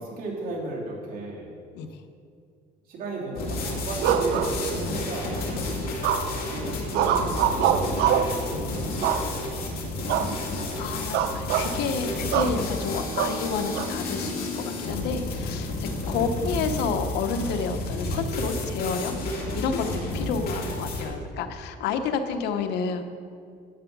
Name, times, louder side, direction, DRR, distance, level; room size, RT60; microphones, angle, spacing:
voice 1, 0.0-1.5 2.8-5.6 6.1-9.6 16.1-16.4 20.2-20.4, right 2 dB, 60° right, -4 dB, 3.0 m, -35 dB
sound 1, 3.3-21.0, left 2 dB, 65° left, 3.1 m, -31 dB
sound 2, 4.0-5.0 6.0-6.5 6.9-8.4 9.0-9.6 10.1-10.3 10.6-10.8 11.1-11.7 12.3-12.6 13.2-13.9, right 9 dB, 90° right, 0.7 m, -24 dB
voice 2, 10.5-23.0, left 5 dB, 85° left, 7 dB, 1.0 m, -30 dB
12.0 x 7.9 x 6.2 m, 2.3 s
cardioid pair, 110°, 17 cm